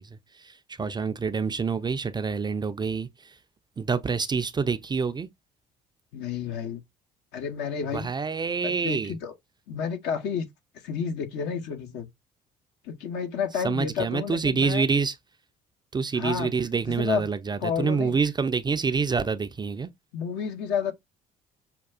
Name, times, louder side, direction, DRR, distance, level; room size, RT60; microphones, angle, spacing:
voice 1, 0.0-3.3 3.8-5.3 7.9-9.2 13.6-15.1 15.9-19.9, right 5 dB, 20° right, 0.4 m, -27 dB
voice 2, 6.1-6.8 7.3-8.1 8.6-9.3 9.7-10.5 10.8-12.1 12.8-14.9 16.1-16.5 17.0-17.2 17.6-18.1 20.1-20.9, left 6 dB, 60° left, 0.8 m, -30 dB
5.8 x 2.3 x 2.2 m
figure-of-eight pair, 50°, 20 cm